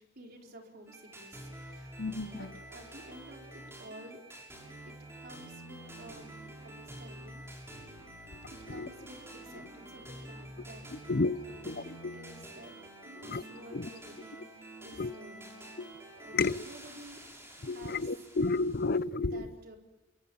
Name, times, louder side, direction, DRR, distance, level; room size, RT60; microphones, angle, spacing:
voice 1, 0.0-2.0 2.3-4.3 4.8-6.3 6.6-7.7 8.5-11.1 11.4-12.7 13.0-15.7 16.2-17.2 17.7-18.2 19.2-19.8, right 1 dB, 55° right, 4.5 m, -52 dB
sound 1, 0.9-19.0, right 1 dB, 15° right, 6.9 m, -48 dB
voice 2, 2.0-2.5 8.7-8.9 11.1-11.7 12.0-12.1 13.3-13.4 13.7-13.9 15.0-15.1 15.8-15.9 16.3-16.6 17.6-19.5, left 3 dB, 55° left, 0.8 m, -31 dB
29.0 x 24.5 x 7.1 m
head